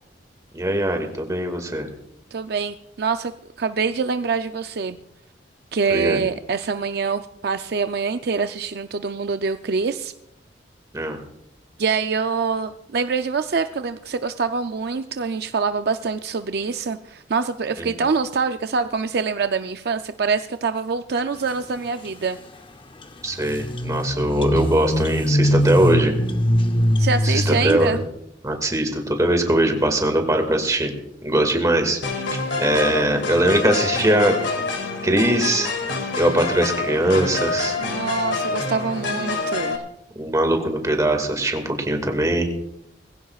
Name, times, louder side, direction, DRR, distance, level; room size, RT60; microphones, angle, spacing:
voice 1, 0.5-1.9 5.9-6.2 10.9-11.2 17.8-17.9 23.2-26.1 27.2-28.0 28.4-30.9 31.2-32.0 32.6-34.4 35.0-35.7 36.2-37.8 40.2-42.5, right 1 dB, 20° right, 5 dB, 2.0 m, -21 dB
voice 2, 2.3-3.3 3.6-5.0 5.7-10.1 11.8-22.4 27.0-28.0 37.8-39.8, right 5 dB, 60° right, 8 dB, 0.5 m, -25 dB
sound 1, 23.0-23.1 23.4-28.1, equal, 30° left, 0.7 m, -21 dB
sound 2, 32.0-39.8, left 3 dB, 85° left, 2.2 m, -27 dB
21.0 x 16.0 x 2.4 m, 0.80 s
head